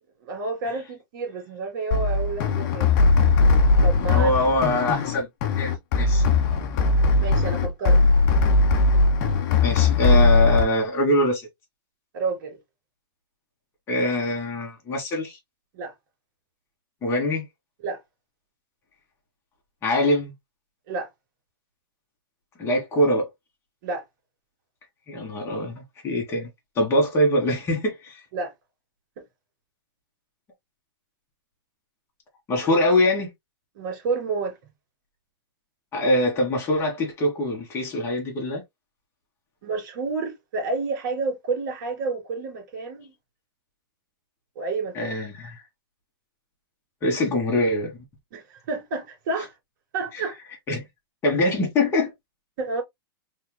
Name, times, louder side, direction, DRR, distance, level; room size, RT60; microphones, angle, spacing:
voice 1, 0.2-2.9 3.8-4.4 7.2-8.0 12.1-12.6 15.7-15.9 17.8-18.0 20.9-21.1 23.8-24.0 28.3-28.5 33.7-34.6 39.6-43.1 44.6-45.2 48.3-49.5 49.9-50.4 52.6-52.8, right 3 dB, 55° right, 2.3 m, -30 dB
sound 1, 1.9-10.6, left 3 dB, 45° left, 1.2 m, -19 dB
voice 2, 4.1-5.3 5.6-6.2 9.6-11.5 13.9-15.4 17.0-17.4 19.8-20.3 22.6-23.3 25.1-26.5 26.8-28.2 32.5-33.3 35.9-38.6 44.9-45.6 47.0-48.0 50.1-50.2 50.7-50.8 51.2-52.1, left 1 dB, 20° left, 2.3 m, -23 dB
4.1 x 3.9 x 2.2 m
hypercardioid pair, 150°, 12 cm